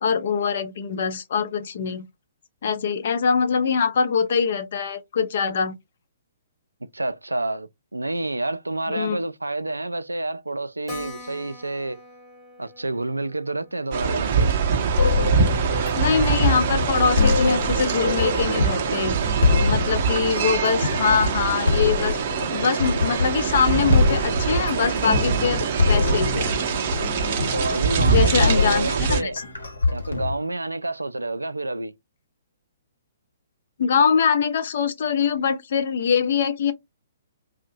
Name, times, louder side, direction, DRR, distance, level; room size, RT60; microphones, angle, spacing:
voice 1, 0.0-2.0 2.6-5.7 8.9-9.2 16.0-19.2 19.6-22.2 22.5-26.6 28.0-29.4 33.8-36.7, left 6 dB, 50° left, 0.5 m, -23 dB
voice 2, 6.9-12.0 12.6-14.5 27.5-29.4 29.9-32.0, right 2 dB, 80° right, 0.3 m, -29 dB
Keyboard (musical), 10.9-15.9 16.2-16.3 16.6-16.7 16.9-17.0 17.6-18.0, left 3 dB, 15° left, 1.0 m, -45 dB
sound 1, 13.9-29.2, right 6 dB, 40° right, 0.6 m, -24 dB
sound 2, 15.0-30.3, left 3 dB, 75° left, 0.9 m, -25 dB
2.6 x 2.1 x 2.6 m
figure-of-eight pair, 120°, 0 cm